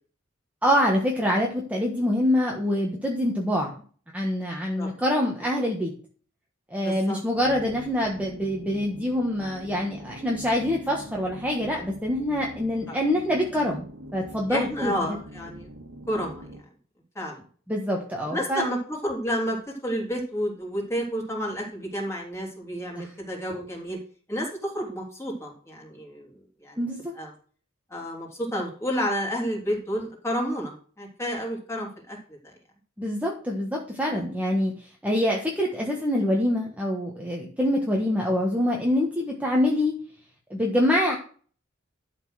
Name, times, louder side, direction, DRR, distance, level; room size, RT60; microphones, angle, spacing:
voice 1, 0.6-3.8 4.1-5.9 6.7-15.2 17.7-18.7 22.9-23.1 26.8-27.1 33.0-39.9 40.5-41.2, left 1 dB, 5° right, -1 dB, 1.4 m, -25 dB
voice 2, 6.8-7.2 14.5-15.7 16.1-16.6 17.2-17.4 18.3-24.0 24.3-26.3 26.6-26.8 27.2-27.3 27.9-32.2 32.4-32.5 34.1-34.2 37.9-38.0, equal, 15° left, -2 dB, 3.4 m, -30 dB
sound 1, 7.3-16.6, right 1 dB, 70° right, 1.7 m, -44 dB
12.0 x 4.5 x 6.3 m, 0.42 s
head